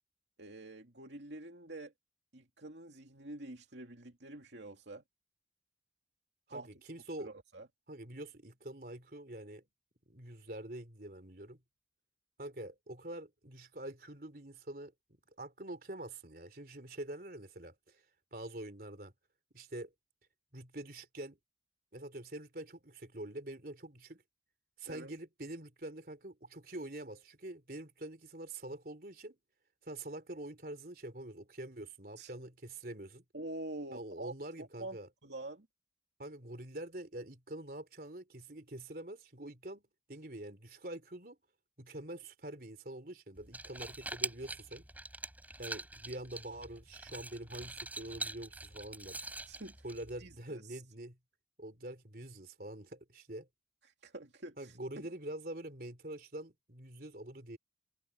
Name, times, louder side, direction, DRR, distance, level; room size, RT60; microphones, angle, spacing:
voice 1, 0.4-1.9 2.3-5.0 6.5-6.7 7.2-7.7 24.9-25.1 32.2-32.3 33.3-35.7 49.5-49.8 50.2-50.8 54.0-54.8, right 2 dB, 80° right, 2.6 m, -46 dB
voice 2, 6.5-7.3 7.9-9.7 10.1-11.6 12.4-14.9 15.4-18.0 18.3-19.1 19.5-19.9 20.5-21.4 21.9-24.2 24.8-29.4 29.8-33.2 33.9-35.1 36.2-41.4 41.8-44.8 45.6-49.2 49.8-51.2 51.6-53.5 54.6-57.6, right 1 dB, 55° right, 3.7 m, -45 dB
sound 1, 43.4-50.4, right 2 dB, 10° right, 4.8 m, -44 dB
head